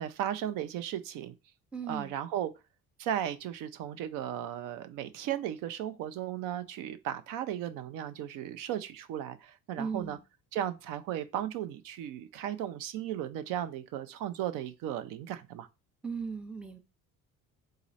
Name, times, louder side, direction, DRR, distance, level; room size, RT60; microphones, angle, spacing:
voice 1, 0.0-1.3 1.9-2.5 3.0-10.2 10.5-15.7, right 11 dB, 80° right, 0.6 m, -35 dB
voice 2, 1.7-2.1 9.8-10.2 16.0-16.8, right 5 dB, 5° right, 0.4 m, -37 dB
3.9 x 3.1 x 4.0 m
cardioid pair, 160°, 32 cm